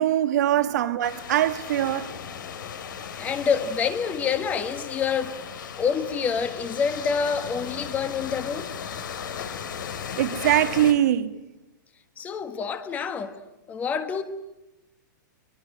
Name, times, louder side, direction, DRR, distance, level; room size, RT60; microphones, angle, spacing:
voice 1, 0.0-2.2 10.2-11.3, right 12 dB, 55° right, 1.7 m, -22 dB
sound 1, 1.0-10.9, left 7 dB, 75° left, 3.4 m, -36 dB
voice 2, 2.8-5.4 5.8-8.7 12.2-13.4 13.7-14.2, left 6 dB, 15° left, 1.6 m, -27 dB
23.5 x 23.0 x 9.0 m
hypercardioid pair, 165°, 11 cm